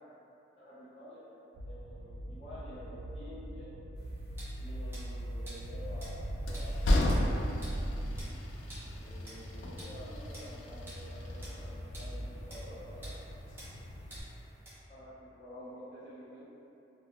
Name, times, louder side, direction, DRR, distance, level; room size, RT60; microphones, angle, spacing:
voice 1, 0.6-3.9 4.6-8.2 9.0-13.4 14.9-16.5, equal, 30° left, -15 dB, 0.6 m, -49 dB
sound 1, 1.5-8.2, right 1 dB, 70° right, 0.3 m, -40 dB
sound 2, 3.9-14.8, right 1 dB, 10° right, 0.6 m, -51 dB
Train, 5.6-14.2, left 1 dB, 80° left, 0.3 m, -35 dB
2.2 x 2.2 x 3.5 m, 2.9 s
head